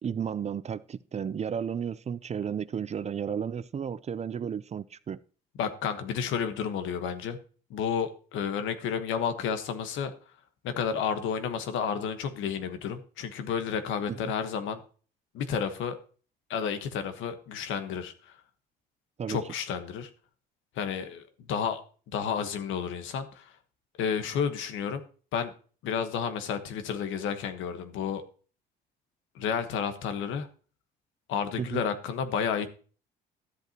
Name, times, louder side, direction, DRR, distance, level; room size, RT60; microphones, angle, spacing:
voice 1, 0.0-5.2 14.1-14.3 19.2-19.4 31.6-31.8, right 7 dB, 35° right, 0.5 m, -33 dB
voice 2, 5.6-7.4 7.7-10.1 10.6-14.8 15.3-16.0 16.5-18.3 19.3-20.1 20.7-21.8 22.1-23.5 24.0-25.0 25.3-25.5 25.8-28.2 29.3-30.5 31.3-32.7, left 7 dB, 75° left, 1.3 m, -31 dB
13.0 x 7.9 x 2.9 m
supercardioid pair, 80°, 20 cm